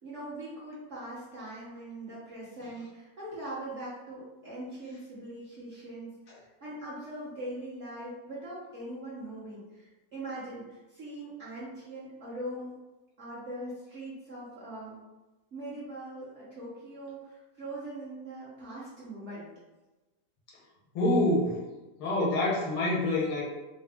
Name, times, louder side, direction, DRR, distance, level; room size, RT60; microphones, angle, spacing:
voice 1, 0.0-12.7 13.2-15.0 15.5-19.5, right 1 dB, 45° right, -10 dB, 1.1 m, -41 dB
voice 2, 21.0-21.6 22.0-23.4, left 1 dB, 80° left, -4 dB, 1.9 m, -26 dB
4.8 x 2.0 x 3.4 m, 1.1 s
omnidirectional pair, 2.3 m